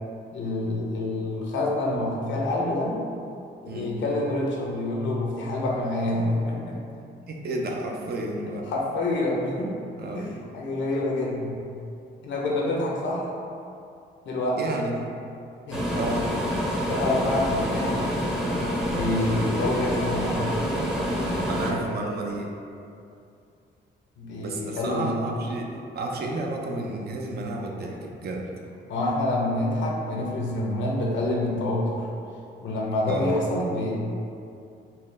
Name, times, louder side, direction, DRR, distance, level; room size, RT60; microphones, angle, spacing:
voice 1, 0.3-3.0 3.6-6.8 8.7-9.8 10.1-11.6 12.2-13.3 14.2-14.6 15.7-15.9 16.9-18.0 18.9-20.4 24.2-25.1 28.9-32.1 32.6-34.0, left 2 dB, 70° left, -2 dB, 0.8 m, -27 dB
voice 2, 7.3-8.7 10.0-10.3 14.6-15.1 15.9-16.3 21.5-22.6 24.4-28.5 33.1-33.3, right 2 dB, 55° right, 0 dB, 0.5 m, -31 dB
sound 1, 15.7-21.7, equal, 5° right, 0.6 m, -27 dB
4.3 x 2.1 x 3.3 m, 2.5 s
cardioid pair, 90°, 20 cm